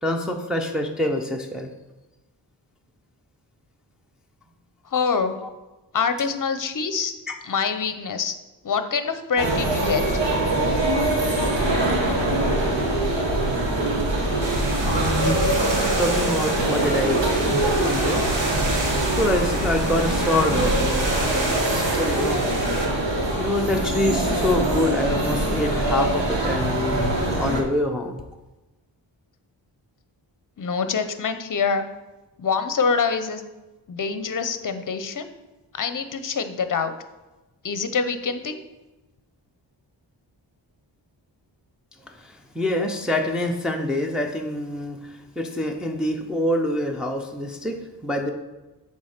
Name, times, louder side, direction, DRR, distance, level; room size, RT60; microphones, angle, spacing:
voice 1, 0.0-1.7 7.3-7.4 14.9-15.4 16.0-17.2 17.5-18.2 19.2-22.5 23.4-28.2 42.2-48.3, left 1 dB, ahead, 1 dB, 0.6 m, -26 dB
voice 2, 4.9-5.4 5.9-7.1 7.4-8.4 8.6-10.0 30.6-31.9 32.4-33.4 33.9-35.3 35.7-36.9 37.6-38.6, left 5 dB, 45° left, 9 dB, 0.7 m, -25 dB
sound 1, 9.4-27.6, right 1 dB, 75° right, 1.4 m, -23 dB
sound 2, 14.4-22.9, right 1 dB, 45° right, 1.4 m, -31 dB
8.5 x 3.6 x 6.5 m, 1.1 s
wide cardioid pair, 120°, 44 cm